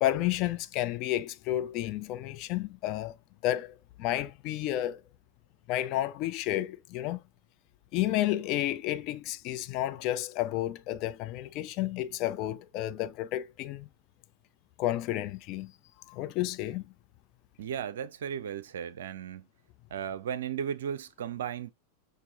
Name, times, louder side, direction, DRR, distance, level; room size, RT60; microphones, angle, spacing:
voice 1, 0.0-3.1 3.4-5.0 5.7-7.2 7.9-13.9 14.8-15.7 16.1-16.9, left 14 dB, 40° left, 0.4 m, -31 dB
voice 2, 17.6-19.5 19.9-21.7, right 8 dB, 60° right, 0.5 m, -35 dB
6.7 x 2.6 x 2.2 m
figure-of-eight pair, 90°, 0 cm